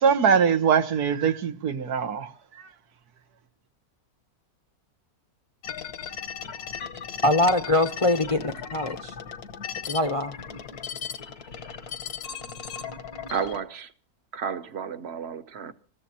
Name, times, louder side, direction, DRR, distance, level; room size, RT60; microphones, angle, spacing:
voice 1, 0.0-2.3, right 7 dB, 90° right, 1.7 m, -22 dB
sound 1, 5.6-13.6, left 7 dB, 80° left, 1.7 m, -37 dB
voice 2, 7.2-9.1 9.9-10.3, left 1 dB, 30° left, 0.6 m, -23 dB
voice 3, 13.3-13.9 14.3-15.7, right 7 dB, 50° right, 1.0 m, -32 dB
26.5 x 14.5 x 2.8 m
omnidirectional pair, 1.6 m